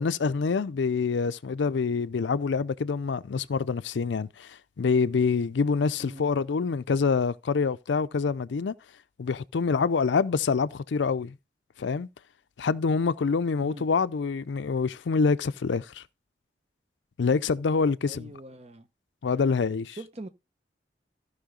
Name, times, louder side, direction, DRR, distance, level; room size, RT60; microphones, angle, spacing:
voice 1, 0.0-8.8 9.2-11.3 11.8-12.1 12.6-16.0 17.2-18.3 19.2-20.0, left 5 dB, 90° left, 0.5 m, -26 dB
voice 2, 18.0-18.9 20.0-20.3, right 1 dB, 35° right, 1.0 m, -42 dB
14.5 x 5.6 x 3.8 m
head